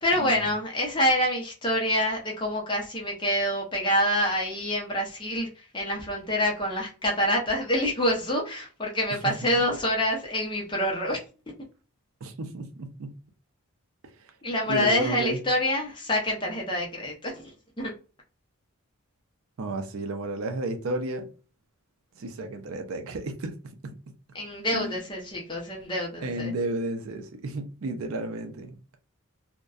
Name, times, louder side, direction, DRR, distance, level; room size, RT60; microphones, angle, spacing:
voice 1, 0.0-11.2 14.4-17.5 17.8-17.9 24.3-26.5, left 1 dB, 20° left, 0.6 m, -26 dB
voice 2, 12.2-13.1 14.0-14.3 14.7-15.4 19.6-21.3 22.2-23.5 23.8-24.0 24.7-25.0 26.2-29.0, right 2 dB, 70° right, 0.4 m, -32 dB
2.5 x 2.1 x 2.3 m
head